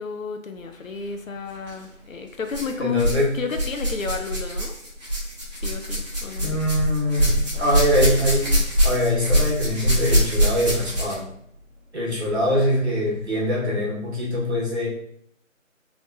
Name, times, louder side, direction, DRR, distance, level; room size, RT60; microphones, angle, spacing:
voice 1, 0.0-3.1 3.3-4.7 5.6-6.6, left 5 dB, 75° left, 6 dB, 0.7 m, -31 dB
sound 1, 1.5-1.7 2.5-3.2 3.5-11.3 12.2-12.3 13.1-13.2, equal, 30° right, 1.4 m, -23 dB
voice 2, 2.8-3.4 6.4-11.3 11.9-14.9, equal, 55° right, -4 dB, 1.4 m, -23 dB
3.7 x 3.4 x 2.6 m, 0.70 s
figure-of-eight pair, 175°, 40 cm